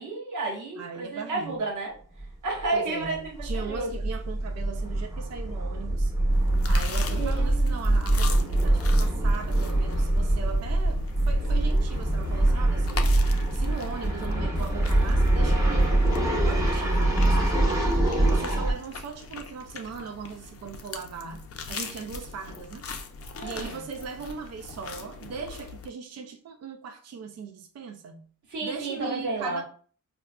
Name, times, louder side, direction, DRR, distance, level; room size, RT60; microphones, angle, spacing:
voice 1, 0.0-3.9 7.1-8.1 23.4-23.8 28.5-29.6, right 3 dB, 85° right, 1.3 m, -32 dB
voice 2, 0.8-1.6 2.7-6.1 6.6-13.1 13.5-15.9 16.3-18.0 18.3-22.8 23.4-28.3 28.6-29.6, right 5 dB, 60° right, 0.5 m, -39 dB
sound 1, 2.2-2.3 2.6-2.7 3.0-18.7, right 1 dB, 10° right, 0.8 m, -24 dB
sound 2, 6.3-25.9, left 3 dB, 50° left, 0.5 m, -39 dB
4.5 x 2.4 x 2.3 m
wide cardioid pair, 110°, 30 cm